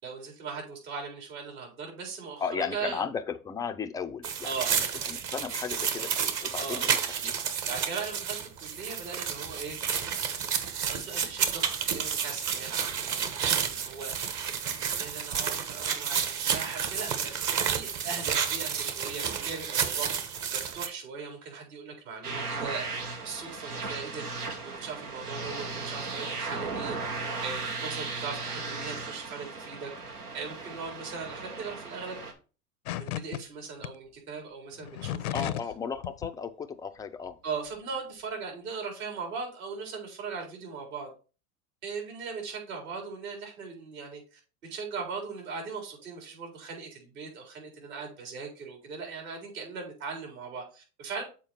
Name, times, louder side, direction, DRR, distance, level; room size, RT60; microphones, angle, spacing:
voice 1, 0.0-3.0 4.4-4.7 6.6-6.9 7.6-9.8 10.9-14.3 15.0-17.4 17.7-24.2 24.6-27.0 27.4-29.9 30.3-32.2 33.0-35.5 37.4-41.1 41.8-51.2, right 5 dB, 65° right, 2 dB, 4.2 m, -39 dB
voice 2, 2.4-4.8 5.1-7.3 35.3-37.4, left 6 dB, 10° left, 7 dB, 0.3 m, -35 dB
sound 1, 4.2-20.9, right 7 dB, 40° right, 1.2 m, -31 dB
sound 2, 22.2-32.3, right 3 dB, 90° right, 1.5 m, -36 dB
sound 3, 32.9-33.4 33.8-33.9 34.8-35.7 36.0-36.3, left 13 dB, 70° left, 0.6 m, -34 dB
7.4 x 4.4 x 4.4 m, 0.35 s
hypercardioid pair, 95°, 45 cm